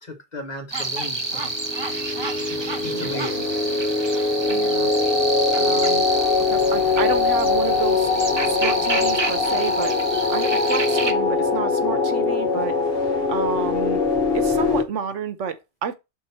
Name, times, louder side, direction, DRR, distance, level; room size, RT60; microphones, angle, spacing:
voice 1, 0.0-1.5 2.5-3.5 5.8-5.9, left 1 dB, 35° left, 1.4 m, -35 dB
sound 1, 0.7-11.1, right 3 dB, 25° right, 0.8 m, -29 dB
sound 2, 1.4-14.8, left 4 dB, 55° left, 1.4 m, -22 dB
voice 2, 4.5-4.9 5.5-6.0 6.4-8.1 8.5-12.8 13.3-14.0 14.3-15.9, right 7 dB, 90° right, 1.3 m, -30 dB
6.7 x 4.0 x 4.3 m
omnidirectional pair, 1.2 m